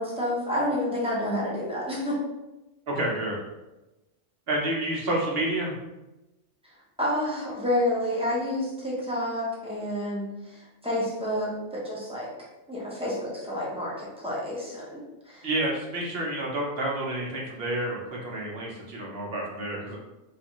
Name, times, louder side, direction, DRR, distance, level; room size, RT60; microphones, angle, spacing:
voice 1, 0.0-2.2 7.0-10.6 10.8-12.3 12.7-15.0 15.3-15.5, left 1 dB, 5° right, -6 dB, 0.6 m, -29 dB
voice 2, 2.9-3.4 4.5-5.7 15.4-20.0, right 1 dB, 55° right, -3 dB, 0.9 m, -29 dB
3.2 x 2.5 x 2.9 m, 1.0 s
omnidirectional pair, 1.3 m